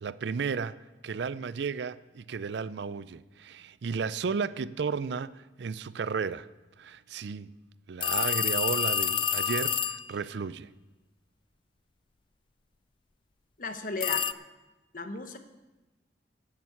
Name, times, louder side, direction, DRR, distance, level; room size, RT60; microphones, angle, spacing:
voice 1, 0.0-0.8 1.0-6.5 6.8-7.5 7.9-10.7, right 5 dB, 75° right, 0.4 m, -33 dB
sound 1, 8.0-10.1 14.0-14.3, left 9 dB, 30° left, 0.3 m, -28 dB
voice 2, 13.6-14.3 14.9-15.4, left 3 dB, 50° left, 1.1 m, -34 dB
15.0 x 8.7 x 5.8 m
head